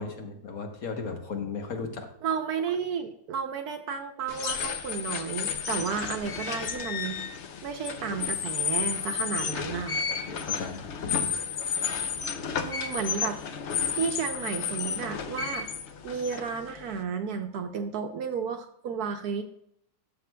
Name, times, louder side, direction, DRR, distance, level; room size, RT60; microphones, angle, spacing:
voice 1, 0.0-2.1 9.0-9.1 10.3-11.3, left 4 dB, 55° left, 4 dB, 1.5 m, -35 dB
voice 2, 2.2-7.2 7.6-10.0 12.6-13.4 13.9-15.7 16.0-19.4, right 6 dB, 70° right, 6 dB, 1.0 m, -32 dB
sound 1, 4.3-17.0, left 7 dB, 75° left, 0.6 m, -32 dB
12.5 x 6.6 x 2.2 m, 0.71 s
omnidirectional pair, 1.9 m